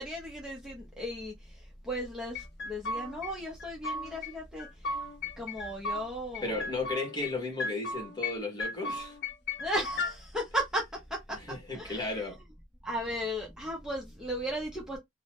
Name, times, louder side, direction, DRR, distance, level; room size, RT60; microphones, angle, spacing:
voice 1, 0.0-1.3 1.8-4.7 5.4-6.6 9.6-11.4 11.7-12.1 12.8-15.0, equal, 5° right, 0.6 m, -35 dB
sound 1, 2.3-3.3 3.6-4.3 4.6-6.0 6.3-7.3 7.6-8.3 8.6-10.1, left 3 dB, 65° left, 0.5 m, -35 dB
voice 2, 6.4-9.2 11.3-12.4, left 3 dB, 25° left, 1.2 m, -34 dB
2.7 x 2.0 x 3.2 m
head